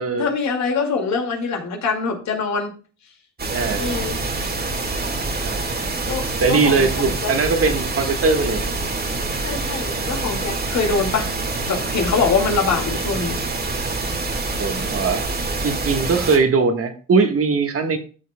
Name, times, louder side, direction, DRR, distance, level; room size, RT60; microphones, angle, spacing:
voice 1, 0.0-2.7 3.8-4.2 6.1-7.3 9.4-11.3 11.7-13.4, left 4 dB, 65° left, 3 dB, 2.3 m, -24 dB
sound 1, 3.4-16.4, right 3 dB, 30° right, 1.8 m, -26 dB
voice 2, 3.5-3.8 5.4-5.6 6.1-8.6 14.3-15.2 15.6-18.0, right 4 dB, 50° right, 6 dB, 1.5 m, -20 dB
13.0 x 6.5 x 2.3 m, 0.37 s
cardioid pair, 90°, 30 cm